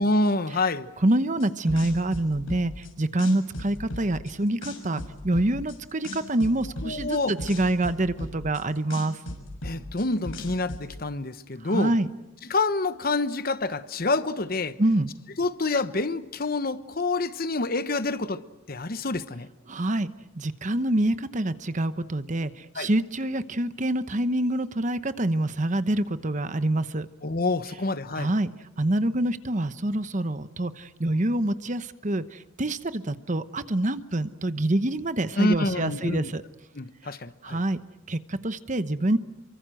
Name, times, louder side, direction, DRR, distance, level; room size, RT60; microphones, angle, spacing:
voice 1, 0.0-0.9 6.8-7.3 9.6-11.9 12.5-14.8 15.4-18.4 18.7-19.5 22.7-22.9 27.2-28.3 35.3-36.3 36.7-37.6, left 2 dB, 50° left, 1.0 m, -27 dB
voice 2, 1.0-9.2 11.6-12.1 14.8-15.1 19.7-20.1 20.4-27.1 28.1-28.5 28.8-36.4 37.4-37.8 38.1-39.2, right 1 dB, 40° right, 1.0 m, -26 dB
sound 1, 1.4-2.9 3.2-4.3 4.6-5.7 6.0-8.6 8.9-10.8, left 1 dB, 85° left, 6.4 m, -36 dB
28.0 x 24.5 x 7.8 m
head